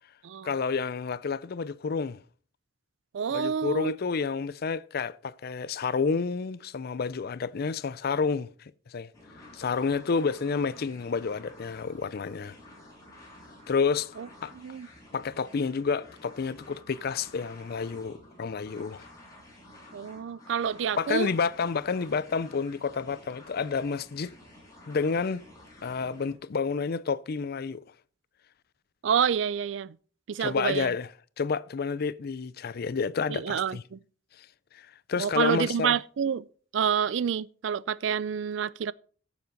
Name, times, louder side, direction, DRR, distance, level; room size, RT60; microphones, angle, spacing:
voice 1, 0.4-2.2 3.3-9.1 9.5-12.6 13.7-14.5 15.1-19.0 21.0-24.3 24.9-25.4 25.8-27.8 30.4-31.1 31.4-33.8 34.4-34.5 34.7-36.0, left 5 dB, 55° left, 0.5 m, -30 dB
voice 2, 3.1-3.9 14.2-14.3 14.5-14.9 19.9-21.3 29.0-30.0 30.3-30.9 33.3-34.0 35.2-36.4 36.7-38.9, right 7 dB, 70° right, 0.4 m, -28 dB
sound 1, 9.1-26.4, left 1 dB, 20° left, 5.4 m, -51 dB
14.5 x 7.2 x 4.0 m
head